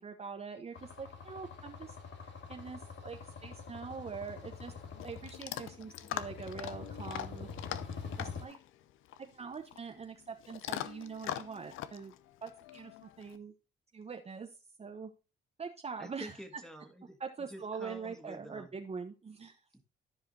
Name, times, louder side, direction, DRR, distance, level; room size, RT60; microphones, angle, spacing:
voice 1, 0.0-2.0 2.5-4.7 5.0-7.5 8.2-8.6 9.2-12.1 12.4-13.5 13.9-14.5 14.8-15.1 15.6-16.6 17.2-19.6, right 5 dB, 30° right, 0.9 m, -43 dB
sound 1, 0.7-8.4, left 5 dB, 70° left, 1.8 m, -45 dB
Chewing mastication / Dog, 4.2-13.4, left 12 dB, 85° left, 0.6 m, -43 dB
voice 2, 16.0-18.7 19.7-19.8, equal, 5° left, 1.8 m, -49 dB
13.0 x 5.0 x 2.7 m
cardioid pair, 90°, 20 cm